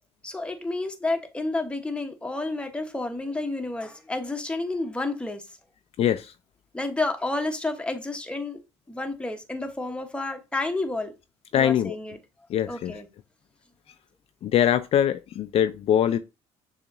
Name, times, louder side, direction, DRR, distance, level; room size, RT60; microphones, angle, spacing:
voice 1, 0.2-5.4 6.7-8.6 8.9-11.1 11.5-12.2 12.7-13.1, left 2 dB, 10° left, 0.9 m, -30 dB
voice 2, 6.0-6.3 11.5-12.0 12.5-13.0 14.4-16.2, left 10 dB, 55° left, 0.4 m, -23 dB
6.8 x 2.9 x 2.5 m
supercardioid pair, 85°, 12 cm